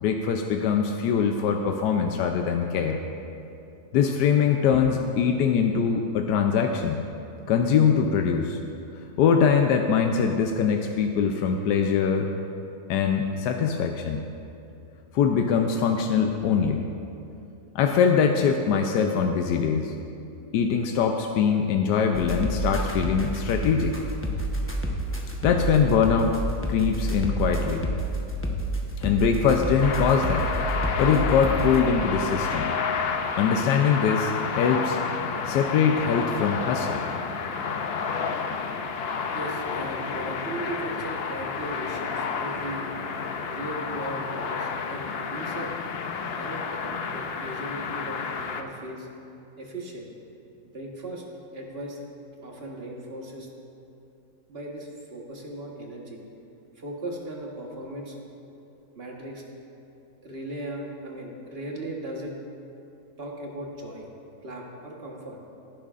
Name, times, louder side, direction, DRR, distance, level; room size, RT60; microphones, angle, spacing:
voice 1, 0.0-3.0 3.9-7.1 7.5-8.6 9.2-12.3 12.9-14.2 15.1-16.8 17.7-19.9 20.5-24.0 25.4-26.4 26.7-27.9 29.0-30.5 31.0-32.7 33.4-35.0 35.5-37.0, left 6 dB, 85° left, 3 dB, 1.2 m, -22 dB
sound 1, 22.1-31.8, right 1 dB, 10° left, 0.6 m, -29 dB
sound 2, 29.8-48.6, left 5 dB, 70° left, 0.5 m, -30 dB
voice 2, 39.3-42.9 43.4-45.7 46.4-49.1 49.6-50.1 50.7-51.2 51.5-52.0 52.4-53.5 54.5-56.2 56.8-58.1 58.9-59.4 60.2-62.3 63.2-64.1 64.4-65.4, right 1 dB, 40° right, -1 dB, 1.5 m, -37 dB
16.5 x 10.0 x 2.5 m, 2.7 s
omnidirectional pair, 1.7 m